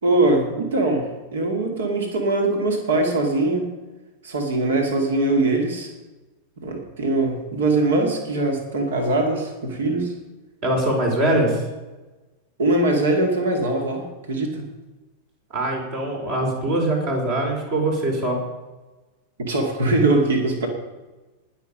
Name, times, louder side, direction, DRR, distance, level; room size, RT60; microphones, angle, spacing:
voice 1, 0.0-3.7 4.2-5.9 6.6-10.1 12.6-14.6 19.4-20.7, right 2 dB, 65° right, 3 dB, 2.5 m, -22 dB
voice 2, 10.6-11.6 15.5-18.4, right 1 dB, 50° right, 1 dB, 4.6 m, -22 dB
20.0 x 7.0 x 5.4 m, 1.2 s
figure-of-eight pair, 90°, 0 cm